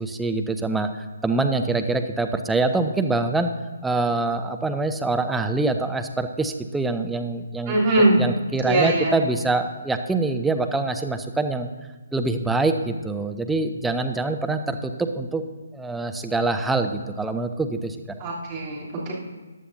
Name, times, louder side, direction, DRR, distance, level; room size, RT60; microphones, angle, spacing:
voice 1, 0.0-3.5 3.8-7.8 8.2-11.7 12.1-15.4 15.7-18.0, right 3 dB, 5° right, 7 dB, 0.5 m, -25 dB
voice 2, 7.7-8.2 8.6-9.1 18.2-19.1, right 2 dB, 25° right, -6 dB, 3.1 m, -21 dB
14.5 x 10.0 x 2.7 m, 1.2 s
figure-of-eight pair, 140°, 0 cm